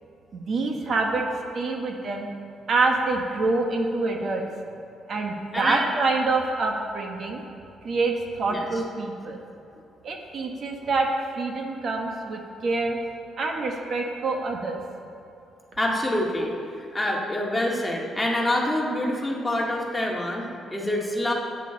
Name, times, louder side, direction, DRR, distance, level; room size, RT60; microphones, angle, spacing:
voice 1, 0.3-1.2 1.5-2.3 2.7-4.5 5.1-7.4 7.8-9.4 10.0-11.1 11.4-13.0 13.4-14.8, right 3 dB, 55° right, 2 dB, 1.3 m, -26 dB
voice 2, 5.5-5.8 8.5-8.7 15.8-16.5 16.9-21.3, left 1 dB, 10° left, -3 dB, 2.1 m, -26 dB
14.0 x 9.3 x 4.0 m, 2.7 s
cardioid pair, 90°, 0 cm